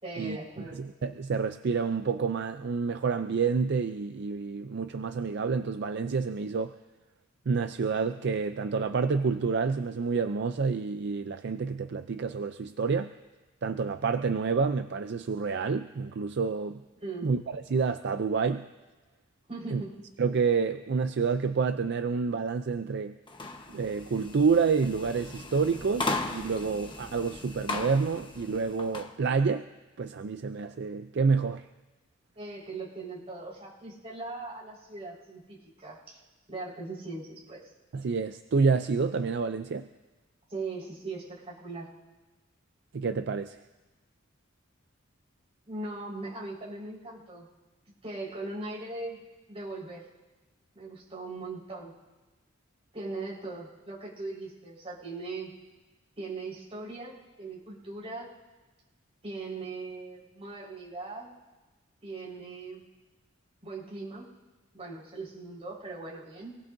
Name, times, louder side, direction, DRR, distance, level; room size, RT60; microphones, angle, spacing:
voice 1, 0.0-0.9 17.0-17.3 19.5-19.9 32.3-36.2 36.5-37.6 40.5-41.9 45.7-47.5 48.0-49.2 49.5-50.0 50.7-51.9 52.9-55.5 56.2-58.3 59.2-61.3 62.0-62.8 63.6-64.3 64.7-66.5, right 3 dB, 30° right, -5 dB, 4.5 m, -39 dB
voice 2, 0.7-6.7 7.5-13.1 13.6-16.8 17.2-18.7 19.7-19.8 20.2-23.2 23.7-29.6 30.0-31.7 37.9-39.9 42.9-43.6, right 5 dB, 55° right, 9 dB, 0.4 m, -28 dB
sound 1, 23.3-29.1, left 2 dB, 25° left, 1.1 m, -37 dB
27.0 x 18.5 x 2.7 m, 1.2 s
head